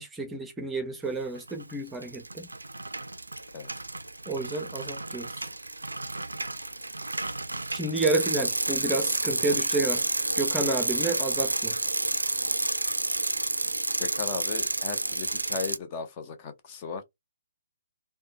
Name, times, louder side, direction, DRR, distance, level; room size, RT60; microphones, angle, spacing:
voice 1, 0.0-2.5 4.3-5.3 7.7-10.1 10.4-11.8, right 2 dB, 10° right, 0.6 m, -30 dB
Bicycle, 1.3-1.7 2.0-15.8, right 2 dB, 85° right, 0.3 m, -30 dB
voice 2, 14.0-17.0, left 5 dB, 30° left, 0.6 m, -36 dB
3.4 x 2.2 x 2.7 m
figure-of-eight pair, 135°, 0 cm